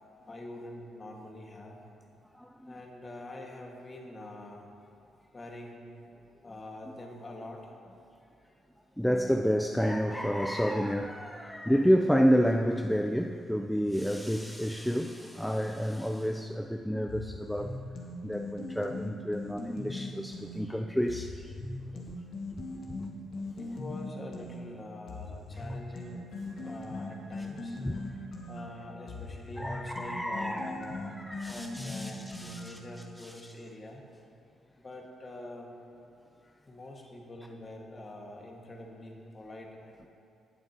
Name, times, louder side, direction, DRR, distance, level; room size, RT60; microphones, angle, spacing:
voice 1, 0.3-1.8 2.6-4.7 5.3-5.9 6.4-7.8 23.6-26.3 26.6-28.2 28.5-31.2 31.5-34.0 34.7-35.8 36.4-40.1, left 1 dB, 30° left, 0 dB, 1.6 m, -45 dB
voice 2, 2.4-2.7 9.0-17.8 18.2-21.5 21.9-22.0 23.0-23.1 26.6-26.7 27.8-28.0 29.6-30.9 31.3-32.7 33.2-33.3, equal, ahead, 3 dB, 0.4 m, -29 dB
sound 1, 17.1-20.6 21.1-24.6 25.1-32.9, left 2 dB, 65° left, 1.7 m, -39 dB
19.0 x 7.4 x 2.9 m, 2.7 s
cardioid pair, 90°, 0 cm